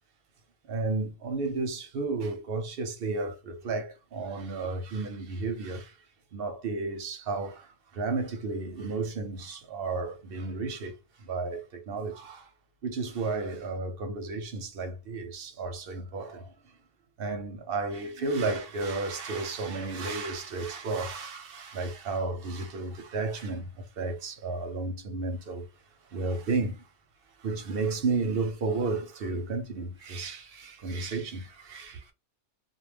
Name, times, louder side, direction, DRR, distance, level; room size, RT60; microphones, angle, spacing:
voice 1, 0.7-6.0 6.3-12.5 12.8-16.5 17.2-25.7 26.1-26.8 27.4-32.1, right 3 dB, 60° right, 0.7 m, -33 dB
2.2 x 2.2 x 3.2 m
omnidirectional pair, 1.2 m